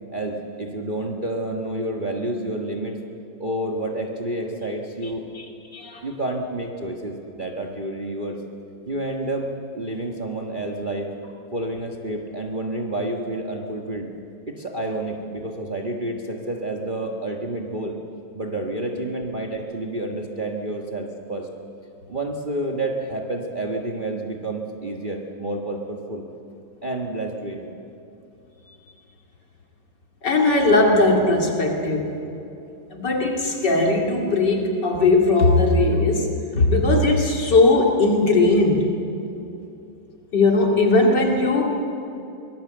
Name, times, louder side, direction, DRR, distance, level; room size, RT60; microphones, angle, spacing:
voice 1, 0.1-3.0 3.4-5.2 6.0-8.4 8.9-9.5 9.7-11.1 11.5-14.1 14.5-18.0 18.3-21.5 22.1-26.2 26.8-27.7, right 1 dB, 25° right, 1 dB, 1.6 m, -29 dB
voice 2, 5.7-6.0 30.2-32.1 32.9-38.9 40.3-41.8, left 2 dB, 60° left, 1 dB, 3.2 m, -19 dB
24.0 x 20.5 x 7.9 m, 2.9 s
omnidirectional pair, 2.1 m